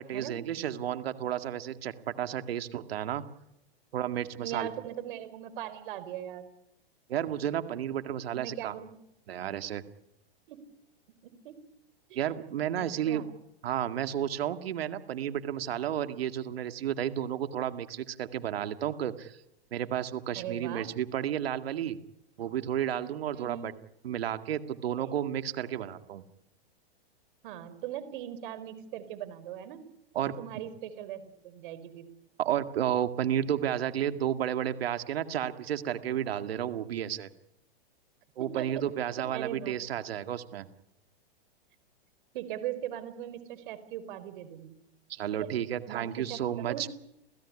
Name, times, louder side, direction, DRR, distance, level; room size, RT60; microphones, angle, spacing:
voice 1, 0.0-3.2 3.9-4.7 7.1-8.7 9.3-9.8 12.2-13.2 13.6-19.4 19.7-22.0 22.4-23.7 24.0-26.2 30.1-30.3 32.4-37.3 38.4-40.7 45.1-46.9, right 10 dB, 70° right, 9 dB, 2.2 m, -32 dB
voice 2, 4.4-6.5 8.3-8.9 10.5-10.6 11.2-11.5 12.1-12.2 12.8-13.3 20.4-20.9 23.3-23.7 25.0-25.1 27.4-29.8 30.2-32.1 38.4-38.8 39.3-39.7 42.3-44.7 45.4-45.5 45.9-46.4 46.7-46.9, right 11 dB, 55° right, 13 dB, 4.6 m, -39 dB
29.0 x 16.0 x 9.9 m, 0.86 s
hypercardioid pair, 135°, 31 cm